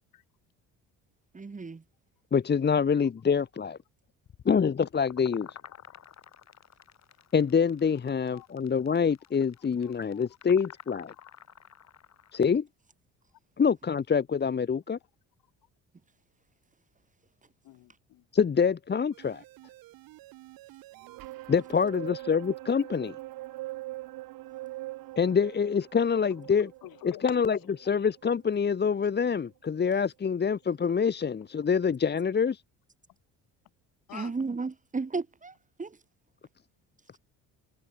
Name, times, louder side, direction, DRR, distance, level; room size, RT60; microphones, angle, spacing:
voice 1, 1.3-1.8 34.1-36.0, right 4 dB, 20° right, 2.9 m, -34 dB
voice 2, 2.3-3.8 4.4-5.5 7.3-11.1 12.3-12.7 13.6-15.0 18.3-19.4 21.5-23.1 25.2-26.7 27.0-32.6, left 6 dB, 30° left, 1.3 m, -26 dB
sound 1, 4.3-12.4, left 9 dB, 50° left, 6.8 m, -50 dB
voice 3, 9.8-10.3 11.2-11.3 17.6-18.2 26.8-27.3 34.1-34.3, left 15 dB, 75° left, 7.0 m, -46 dB
sound 2, 19.1-29.5 29.9-30.0, right 18 dB, 80° right, 3.1 m, -43 dB
cardioid pair, 100°, 35 cm